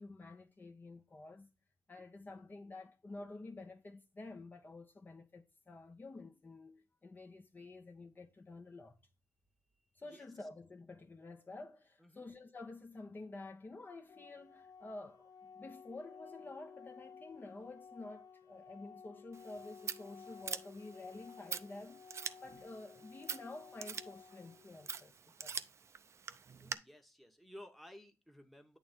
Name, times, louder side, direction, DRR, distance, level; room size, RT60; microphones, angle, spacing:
voice 1, 0.0-1.5 1.9-9.0 9.9-22.1 22.4-25.6, left 2 dB, 30° left, 1.0 m, -50 dB
voice 2, 2.0-2.4 10.0-10.5 12.0-12.2 26.6-28.8, left 1 dB, ahead, 1.2 m, -56 dB
Organ, 14.1-25.1, left 6 dB, 75° left, 0.7 m, -56 dB
Scissors, 19.3-26.7, right 6 dB, 50° right, 0.5 m, -46 dB
8.7 x 3.2 x 5.2 m
cardioid pair, 105°, 6 cm